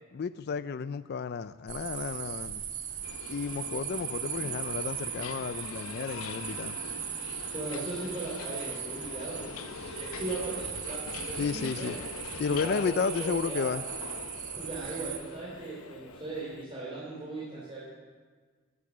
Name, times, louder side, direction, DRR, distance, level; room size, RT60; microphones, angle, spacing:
voice 1, 0.1-2.6 3.3-6.8 11.4-12.0 12.4-13.8, left 5 dB, 50° left, 14 dB, 0.3 m, -32 dB
sound 1, 1.7-15.2, right 9 dB, 90° right, 1.8 m, -38 dB
Subway metro underground, 3.0-16.6, left 5 dB, 90° left, 0.7 m, -43 dB
voice 2, 7.5-12.0 12.4-13.7 14.5-17.9, right 2 dB, 25° right, -6 dB, 3.0 m, -38 dB
19.0 x 8.1 x 6.2 m, 1.5 s
head